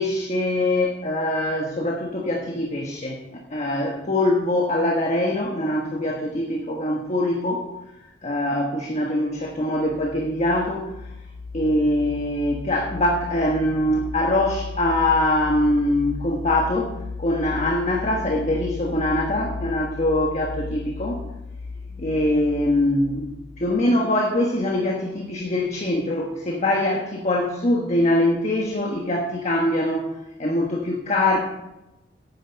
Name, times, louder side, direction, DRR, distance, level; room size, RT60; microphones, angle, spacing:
voice 1, 0.0-7.7 8.2-10.9 11.5-16.9 17.2-21.2 22.0-23.3 23.6-31.4, left 1 dB, 35° left, 0 dB, 1.3 m, -23 dB
sound 1, 9.4-23.9, left 4 dB, 75° left, 0.9 m, -36 dB
10.5 x 9.2 x 5.3 m, 0.96 s
head